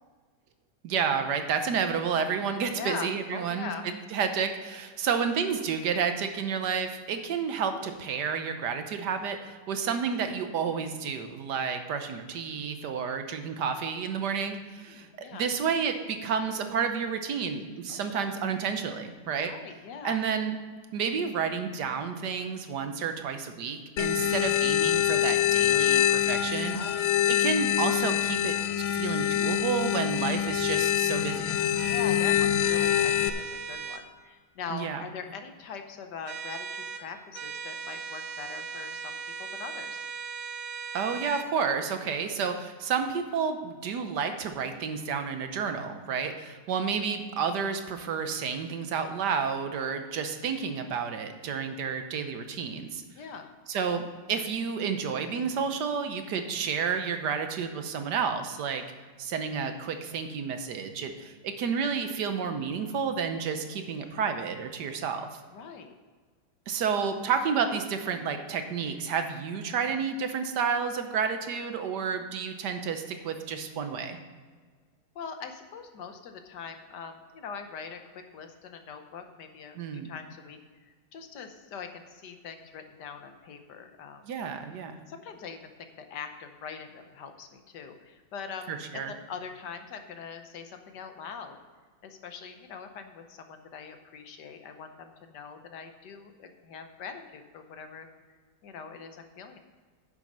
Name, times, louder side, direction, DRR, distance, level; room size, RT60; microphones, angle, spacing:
voice 1, 0.8-19.5 20.0-20.5 20.9-26.8 27.3-28.6 28.9-31.6 34.7-35.0 40.9-53.0 53.7-58.8 59.2-65.4 66.7-74.2 79.8-80.1 84.2-85.0 88.7-89.1, right 6 dB, 70° right, 7 dB, 1.4 m, -30 dB
voice 2, 2.7-3.9 14.9-15.5 17.9-18.3 19.4-20.2 25.5-26.2 26.7-27.2 31.9-40.0 53.1-53.5 65.5-65.9 75.1-79.8 80.0-84.2 85.1-91.6 92.0-99.6, left 6 dB, 70° left, 7 dB, 1.5 m, -42 dB
sound 1, 24.0-33.3, left 11 dB, 90° left, 0.6 m, -25 dB
sound 2, 31.8-32.1 32.6-34.0 36.2-37.0 37.3-41.5, right 6 dB, 85° right, 1.6 m, -38 dB
9.6 x 7.5 x 5.3 m, 1.5 s
omnidirectional pair, 2.0 m